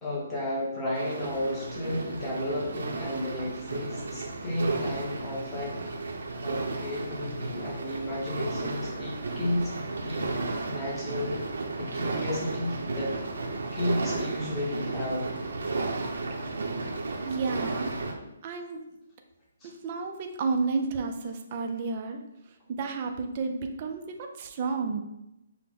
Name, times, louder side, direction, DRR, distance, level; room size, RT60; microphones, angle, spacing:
voice 1, 0.0-9.7 10.0-10.3 10.7-11.5 11.8-13.1 13.7-15.3 19.6-19.7, left 1 dB, 10° left, -6 dB, 0.8 m, -33 dB
sound 1, 0.9-18.1, right 3 dB, 75° right, 0.7 m, -33 dB
voice 2, 17.2-17.9 18.4-18.8 19.6-22.2 22.7-25.0, right 4 dB, 25° right, 4 dB, 0.4 m, -31 dB
5.9 x 2.1 x 3.6 m, 0.88 s
hypercardioid pair, 175°, 0 cm